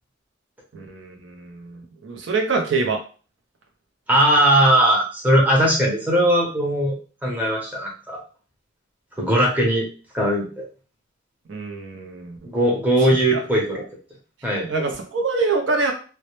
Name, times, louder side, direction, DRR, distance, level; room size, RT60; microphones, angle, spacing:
voice 1, 0.7-3.0 11.5-12.4 12.9-13.4 14.5-15.9, right 4 dB, 70° right, 3 dB, 0.5 m, -25 dB
voice 2, 4.1-6.9 7.2-8.2 9.2-9.9 10.1-10.6 12.4-13.8 14.4-14.7, right 1 dB, 10° right, -3 dB, 0.7 m, -19 dB
2.1 x 2.1 x 2.9 m, 0.37 s
head